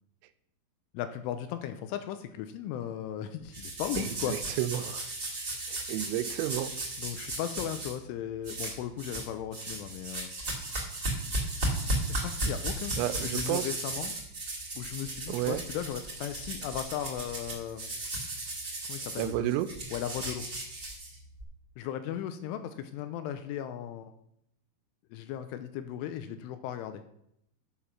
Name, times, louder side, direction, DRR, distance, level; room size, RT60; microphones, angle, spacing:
voice 1, 0.9-4.4 7.0-10.3 12.1-14.2 14.8-17.9 18.9-19.5 19.9-20.5 21.8-24.1 25.1-27.0, left 10 dB, 80° left, 9 dB, 3.0 m, -36 dB
sound 1, 3.5-7.9 8.4-9.3 9.5-21.4, right 1 dB, 25° right, 2.4 m, -35 dB
voice 2, 4.0-5.1 5.7-6.7 13.0-13.7 15.3-15.6 19.2-19.7, right 13 dB, 85° right, 13 dB, 3.3 m, -31 dB
11.0 x 7.0 x 5.8 m, 0.74 s
omnidirectional pair, 5.9 m